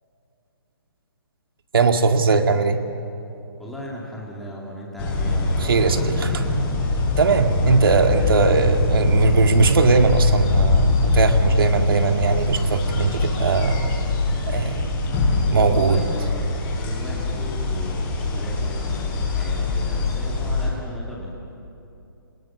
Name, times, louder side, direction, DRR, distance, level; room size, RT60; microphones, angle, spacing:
voice 1, 1.7-2.8 5.6-6.4 7.2-13.8 14.5-14.9 15.5-16.0, right 4 dB, 65° right, 6 dB, 2.0 m, -19 dB
voice 2, 3.6-6.6 7.5-8.5 15.6-16.4 16.7-21.3, left 1 dB, ahead, -5 dB, 2.3 m, -37 dB
sound 1, 5.0-20.7, left 2 dB, 20° left, 5.2 m, -23 dB
26.5 x 20.0 x 7.3 m, 2.8 s
hypercardioid pair, 165°, 13 cm